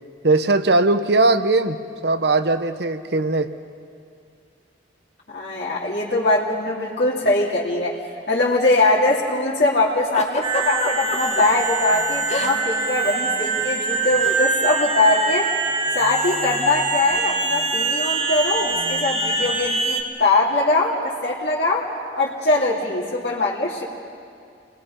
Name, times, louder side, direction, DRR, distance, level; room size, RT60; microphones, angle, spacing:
voice 1, 0.2-1.8 2.0-3.5, right 2 dB, 65° right, 10 dB, 1.0 m, -19 dB
voice 2, 5.3-8.0 8.3-15.5 15.9-21.9 22.1-23.8, left 2 dB, 65° left, -6 dB, 2.7 m, -21 dB
Giggle, 10.1-11.4 12.3-12.8 13.0-13.3 14.2-14.4, left 3 dB, 40° left, 1.7 m, -28 dB
sound 1, 10.4-20.0, right 3 dB, 30° right, 1.5 m, -24 dB
29.5 x 20.5 x 5.4 m, 2.4 s
head